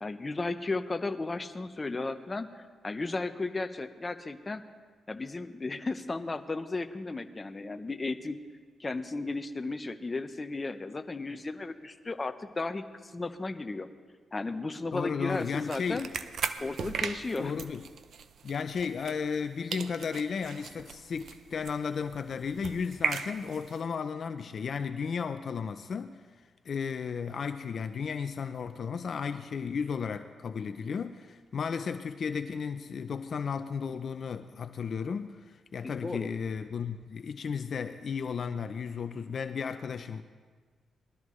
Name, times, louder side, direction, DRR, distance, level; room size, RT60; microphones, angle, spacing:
voice 1, 0.0-4.6 5.1-8.4 8.8-13.9 14.3-16.1 16.6-17.5 35.8-36.3, left 3 dB, 25° left, 9 dB, 0.8 m, -34 dB
voice 2, 14.9-16.1 17.4-17.8 18.4-40.2, left 6 dB, 55° left, 9 dB, 0.5 m, -34 dB
sound 1, 15.3-19.5 19.7-23.8, right 6 dB, 70° right, 0.6 m, -38 dB
20.0 x 13.0 x 3.2 m, 1.5 s
cardioid pair, 85°, 0 cm